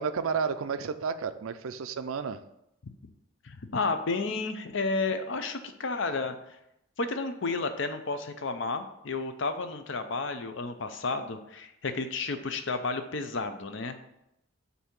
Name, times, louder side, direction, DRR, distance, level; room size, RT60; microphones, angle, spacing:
voice 1, 0.0-2.4, right 5 dB, 80° right, 11 dB, 0.5 m, -31 dB
voice 2, 3.4-6.6 7.0-14.0, left 3 dB, 60° left, 8 dB, 0.6 m, -32 dB
8.1 x 2.8 x 5.9 m, 0.84 s
head